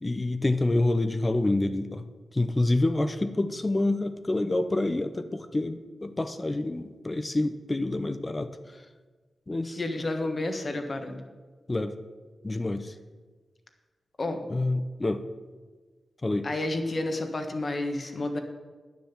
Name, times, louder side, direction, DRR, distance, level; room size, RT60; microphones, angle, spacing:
voice 1, 0.0-2.1 2.3-8.5 9.5-9.8 11.7-12.0 12.4-12.9 14.5-15.2 16.2-16.5, left 2 dB, 25° left, 10 dB, 0.6 m, -27 dB
voice 2, 9.8-11.2 14.2-14.4 16.4-18.4, left 2 dB, 45° left, 6 dB, 1.4 m, -30 dB
9.9 x 7.3 x 7.3 m, 1.4 s
cardioid pair, 80°, 0 cm